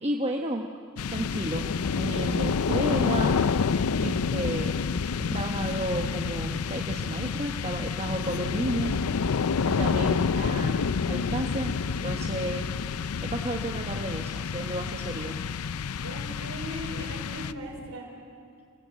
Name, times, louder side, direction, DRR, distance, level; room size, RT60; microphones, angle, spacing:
voice 1, 0.0-0.7 1.1-1.7 2.0-3.4 4.0-4.8 5.2-9.0 9.6-11.7 12.0-12.8 13.2-15.4, right 1 dB, 25° right, 1 dB, 1.1 m, -32 dB
sound 1, 1.0-17.9, left 5 dB, 85° left, 0.5 m, -28 dB
voice 2, 16.0-18.1, right 1 dB, 70° right, 1 dB, 5.1 m, -39 dB
28.5 x 20.0 x 7.7 m, 2.4 s
head